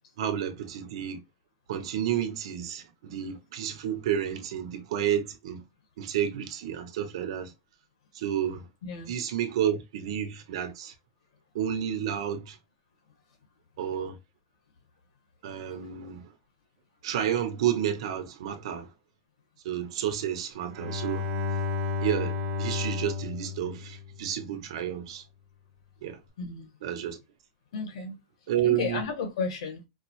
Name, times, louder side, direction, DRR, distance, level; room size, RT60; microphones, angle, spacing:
voice 1, 0.2-1.2 1.7-5.6 6.0-7.5 8.1-8.7 9.1-10.9 11.5-12.6 13.8-14.2 15.4-16.3 17.0-18.9 19.6-21.3 22.0-25.2 26.0-26.2 26.8-27.2 28.5-29.0, right 10 dB, 65° right, 1.0 m, -30 dB
voice 2, 8.8-9.1 26.4-26.7 27.7-28.2 28.6-29.8, left 4 dB, 75° left, 1.5 m, -33 dB
Bowed string instrument, 20.6-24.4, left 5 dB, 40° right, 1.1 m, -32 dB
5.0 x 2.1 x 3.0 m
supercardioid pair, 175°, 3 cm